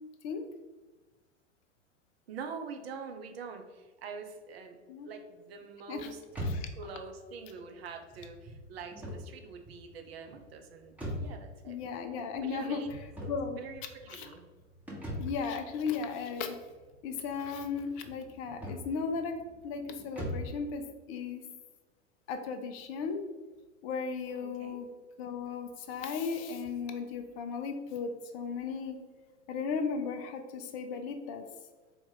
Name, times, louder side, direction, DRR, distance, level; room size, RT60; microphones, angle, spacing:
voice 1, 2.3-6.2 6.8-11.8 12.4-14.4 24.4-24.8, right 5 dB, 55° right, 5 dB, 0.7 m, -45 dB
sound 1, 6.3-20.6, equal, 5° right, 0.9 m, -43 dB
voice 2, 11.7-12.8 13.3-13.6 14.1-14.3 15.2-16.6 17.0-19.4 19.6-20.8 21.1-21.4 22.3-23.2 23.8-24.9 25.2-29.0 29.5-31.4, left 5 dB, 30° left, 7 dB, 0.4 m, -36 dB
4.2 x 2.8 x 3.7 m, 1.3 s
figure-of-eight pair, 95°, 37 cm